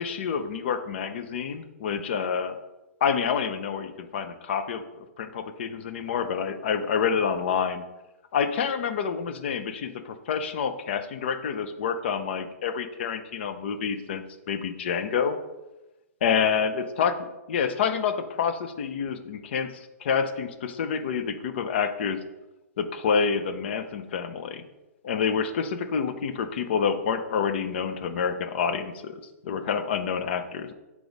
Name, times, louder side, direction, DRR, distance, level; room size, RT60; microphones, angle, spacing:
voice 1, 0.0-2.6 3.0-7.8 8.3-15.4 16.2-17.1 17.5-22.2 22.8-24.6 25.0-30.7, left 6 dB, 45° left, 9 dB, 0.6 m, -28 dB
6.9 x 4.9 x 4.0 m, 1.0 s
hypercardioid pair, 175°, 8 cm